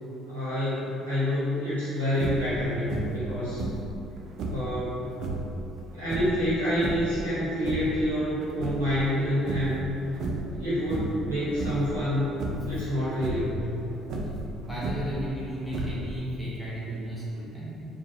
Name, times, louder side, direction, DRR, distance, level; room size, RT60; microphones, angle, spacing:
voice 1, 0.2-3.6 4.5-5.1 5.9-9.8 10.5-12.4 12.6-13.7, equal, 85° right, -12 dB, 1.0 m, -28 dB
sound 1, 2.1-2.6 2.9-3.3 3.6-4.7 5.1-5.5 6.0-7.2 7.5-8.0 8.4-9.2 9.5-9.8 10.1-10.6 10.9-11.3 11.6-11.9 12.4-12.7 13.1-13.5 14.0-15.2 15.7-16.2, right 2 dB, 60° right, 0.5 m, -33 dB
voice 2, 14.6-17.7, equal, 10° left, -9 dB, 1.4 m, -34 dB
4.5 x 2.6 x 2.8 m, 2.9 s
hypercardioid pair, 55°, 0 cm